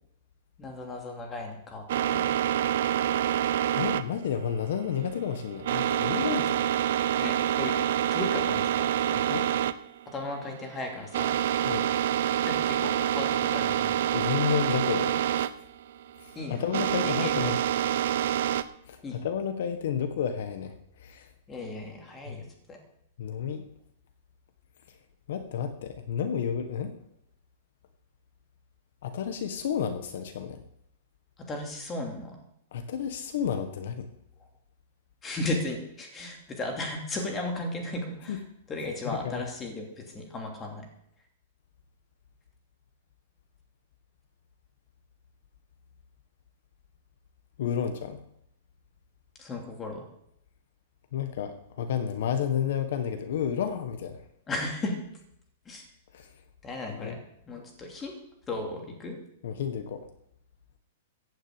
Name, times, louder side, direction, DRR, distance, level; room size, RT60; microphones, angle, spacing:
voice 1, 0.6-2.3 7.2-7.7 8.1-9.4 10.1-11.4 11.6-11.7 12.4-14.1 16.3-16.6 17.0-17.8 19.0-19.2 21.5-22.8 31.5-32.4 35.2-38.4 38.7-40.8 49.4-50.1 54.5-55.0 55.7-55.8 56.6-57.2 57.5-58.1 58.5-59.2, left 2 dB, 15° left, 2 dB, 2.8 m, -35 dB
sound 1, 1.9-18.6, right 10 dB, 60° right, 0.7 m, -27 dB
voice 2, 3.8-6.7 9.3-9.5 11.6-11.9 14.1-15.5 16.2-17.6 18.9-21.3 22.3-22.4 23.2-23.6 25.3-26.9 29.0-30.6 32.7-34.1 38.3-38.4 39.0-39.4 47.6-48.2 51.1-54.2 56.1-56.3 56.9-57.2 59.4-60.1, left 8 dB, 60° left, 8 dB, 1.4 m, -31 dB
15.0 x 6.4 x 9.1 m, 0.75 s
supercardioid pair, 165°, 0 cm